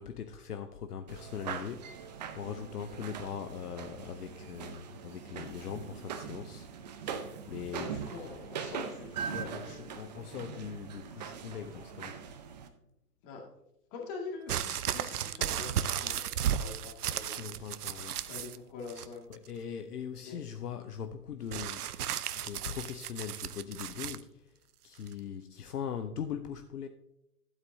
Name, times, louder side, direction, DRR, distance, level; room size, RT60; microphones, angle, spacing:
voice 1, 0.0-6.7 7.5-7.9 9.3-12.3 17.3-18.3 19.3-21.9 22.4-24.6 24.8-26.9, left 7 dB, 70° left, 8 dB, 0.8 m, -41 dB
sound 1, 1.1-12.7, right 7 dB, 25° right, 0.6 m, -41 dB
voice 2, 7.8-9.8 13.2-13.5 13.9-17.7 18.3-19.3 20.2-20.4, left 4 dB, 30° left, 0 dB, 2.1 m, -45 dB
sound 2, 14.5-18.6 18.9-19.5 21.5-24.2 25.1-25.2, right 10 dB, 70° right, 0.6 m, -34 dB
12.0 x 8.1 x 2.7 m, 0.85 s
hypercardioid pair, 130°, 48 cm